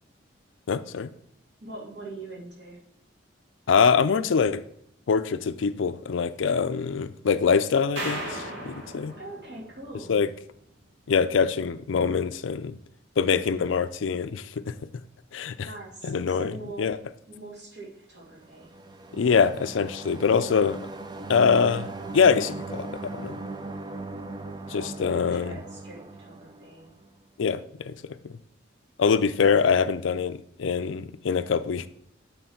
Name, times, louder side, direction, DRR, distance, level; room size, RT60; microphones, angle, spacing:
voice 1, 0.7-1.1 3.7-4.6 5.1-9.1 10.1-10.3 11.1-12.8 13.2-14.8 15.3-15.7 16.0-17.0 19.1-20.8 21.3-21.9 22.1-23.4 24.7-25.6 27.4-27.9 28.2-28.3 29.0-31.9, left 6 dB, 80° left, 0.4 m, -24 dB
voice 2, 1.6-2.8 9.2-10.2 15.6-16.9 17.3-18.7 24.7-26.9 29.8-30.0, right 2 dB, 60° right, 3.0 m, -43 dB
sound 1, 8.0-10.3, right 1 dB, 75° right, 2.1 m, -36 dB
sound 2, 18.4-27.1, right 2 dB, 20° right, 0.5 m, -39 dB
9.2 x 3.9 x 5.8 m
head